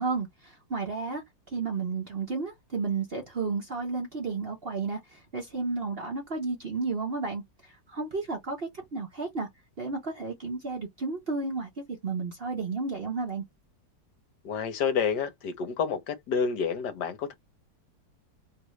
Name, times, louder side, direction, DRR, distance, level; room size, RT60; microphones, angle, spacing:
voice 1, 0.0-9.5 9.8-11.7 12.0-13.4, right 4 dB, 40° right, 0.9 m, -32 dB
voice 2, 14.4-17.3, left 6 dB, 70° left, 1.3 m, -29 dB
3.2 x 2.5 x 3.1 m
omnidirectional pair, 2.0 m